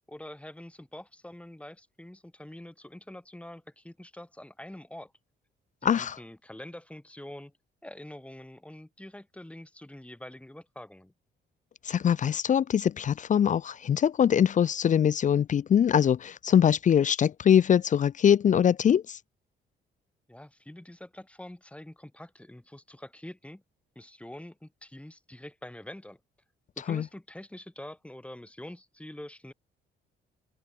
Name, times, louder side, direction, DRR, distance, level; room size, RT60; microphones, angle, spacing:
voice 1, 0.1-5.1 5.8-7.5 7.8-11.1 20.3-23.6 23.9-26.2 26.8-29.5, left 1 dB, 5° left, 6.6 m, -45 dB
voice 2, 5.8-6.2 11.9-19.2 26.9-27.0, left 9 dB, 40° left, 0.4 m, -23 dB
cardioid pair, 90°, 20 cm